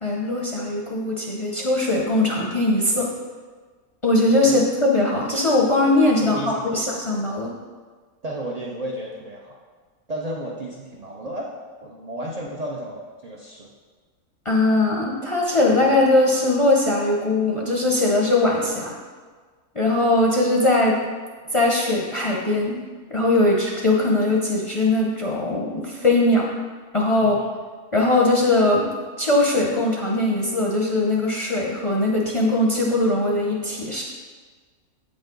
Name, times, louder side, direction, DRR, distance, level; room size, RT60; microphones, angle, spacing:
voice 1, 0.0-3.1 4.0-7.5 14.4-19.0 19.7-21.0 21.5-22.8 23.1-26.5 26.9-27.4 27.9-28.9 29.2-34.0, left 2 dB, 35° left, -3 dB, 0.5 m, -20 dB
voice 2, 6.2-6.8 8.2-9.6 10.1-11.5 11.8-13.7 27.2-27.5, right 1 dB, 75° right, -2 dB, 0.3 m, -33 dB
8.0 x 5.1 x 3.8 m, 1.5 s
omnidirectional pair, 1.6 m